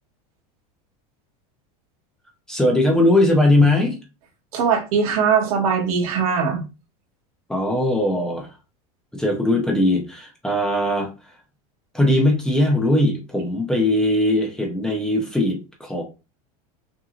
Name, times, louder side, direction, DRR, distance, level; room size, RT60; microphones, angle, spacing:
voice 1, 2.5-4.0 7.5-8.5 9.1-11.3 11.9-16.0, left 1 dB, 5° left, 0 dB, 0.6 m, -20 dB
voice 2, 4.5-6.6, right 6 dB, 80° right, 1 dB, 1.6 m, -20 dB
5.8 x 2.7 x 2.4 m, 0.29 s
supercardioid pair, 175°, 19 cm